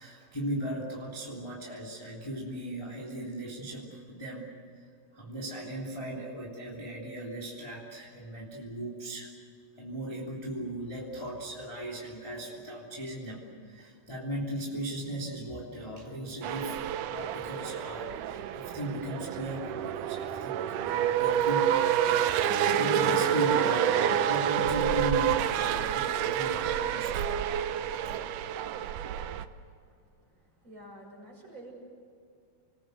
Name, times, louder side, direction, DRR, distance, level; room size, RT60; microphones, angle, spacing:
voice 1, 0.0-4.9 5.1-9.3 9.8-21.8 22.6-27.3 28.0-28.2, right 1 dB, 5° left, -4 dB, 2.6 m, -37 dB
sound 1, 16.4-29.5, right 10 dB, 80° right, 1.9 m, -28 dB
sound 2, 22.5-25.1, left 7 dB, 50° left, 3.0 m, -43 dB
voice 2, 30.6-31.7, right 1 dB, 25° right, 0 dB, 6.4 m, -48 dB
28.5 x 20.5 x 8.1 m, 2.4 s
omnidirectional pair, 4.7 m